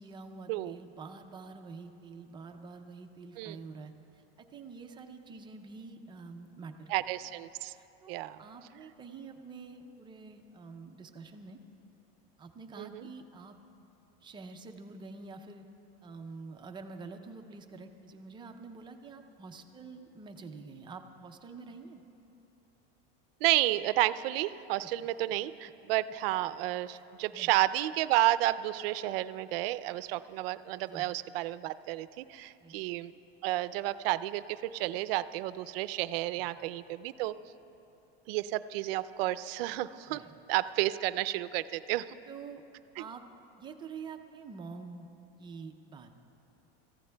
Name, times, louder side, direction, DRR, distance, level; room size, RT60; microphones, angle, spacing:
voice 1, 0.0-6.9 7.7-11.6 12.4-13.6 14.2-15.6 16.0-22.0 26.9-27.0 27.3-27.6 30.9-31.0 32.6-32.8 36.4-36.5 40.1-40.3 42.3-42.6 42.9-43.2 43.6-45.1 45.4-46.1, right 4 dB, 15° right, 5 dB, 0.4 m, -47 dB
voice 2, 6.9-7.7 8.1-8.4 12.8-13.0 23.4-33.1 33.4-37.3 38.3-40.2 40.5-42.1, right 16 dB, 70° right, 15 dB, 0.5 m, -31 dB
27.0 x 15.0 x 2.2 m, 2.9 s
supercardioid pair, 155°, 30 cm